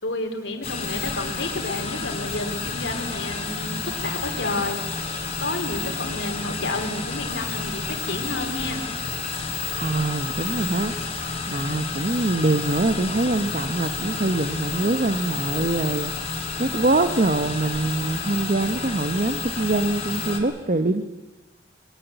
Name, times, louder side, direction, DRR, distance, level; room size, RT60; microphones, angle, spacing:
voice 1, 0.0-5.1 5.4-8.8, left 2 dB, 90° left, 5 dB, 3.2 m, -30 dB
sound 1, 0.6-20.4, left 4 dB, 35° left, 3.3 m, -30 dB
voice 2, 9.8-21.0, right 2 dB, 45° right, 10 dB, 0.9 m, -24 dB
22.5 x 19.5 x 8.2 m, 1.2 s
head